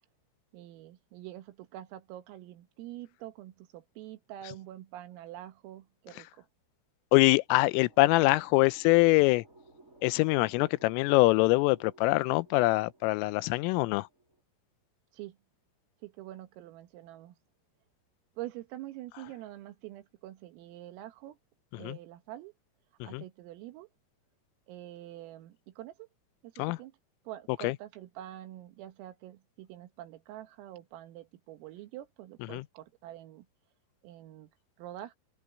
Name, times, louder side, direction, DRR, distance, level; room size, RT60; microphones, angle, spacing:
voice 1, 0.5-6.5 15.1-15.4 16.0-17.4 18.4-21.4 21.8-22.5 23.0-23.9 24.7-26.1 26.4-27.0 27.3-33.5 34.0-34.5 34.8-35.1, right 14 dB, 90° right, 4.3 m, -46 dB
voice 2, 7.1-9.4 10.0-14.1 21.8-22.0 23.0-23.2 26.6-26.8 27.6-27.8 32.5-32.6, left 22 dB, 90° left, 3.3 m, -24 dB
sound 1, 7.4-14.4, right 2 dB, 15° right, 5.6 m, -58 dB
omnidirectional pair, 5.8 m